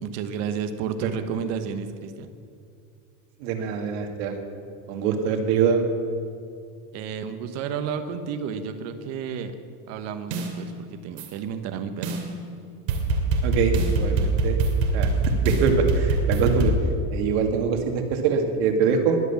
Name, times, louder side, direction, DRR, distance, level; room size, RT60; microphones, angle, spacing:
voice 1, 0.0-2.3 6.9-9.6 9.9-12.2, right 7 dB, 45° right, 9 dB, 1.2 m, -31 dB
voice 2, 3.4-4.4 4.9-5.8 13.4-14.6 14.9-15.1 15.4-16.7 17.1-19.2, right 6 dB, 60° right, 4 dB, 2.2 m, -24 dB
sound 1, 10.3-10.5 11.2-11.3 12.0-12.2 12.9-16.7, right 2 dB, 85° right, 2.8 m, -23 dB
21.0 x 8.1 x 7.2 m, 2.4 s
supercardioid pair, 165°, 37 cm